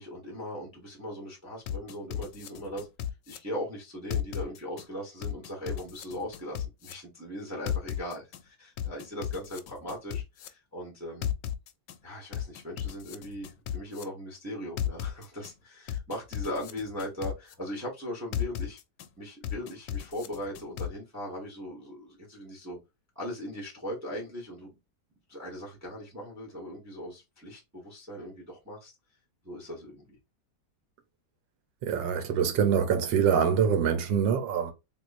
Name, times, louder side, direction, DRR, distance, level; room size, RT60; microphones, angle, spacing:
voice 1, 0.0-2.9 3.3-11.3 12.0-18.8 19.2-22.8 23.1-24.7 25.3-28.9 29.4-30.2, equal, 10° right, 0.9 m, -39 dB
sound 1, 1.7-3.4 4.1-4.8 5.2-6.9 7.7-8.4 8.8-10.5 11.2-12.0 12.3-14.0 14.8-15.5 15.9-17.5 18.3-19.1 19.4-20.9, left 10 dB, 80° left, 1.2 m, -34 dB
voice 2, 31.8-34.7, right 7 dB, 85° right, 1.5 m, -25 dB
3.5 x 3.1 x 2.5 m
omnidirectional pair, 1.9 m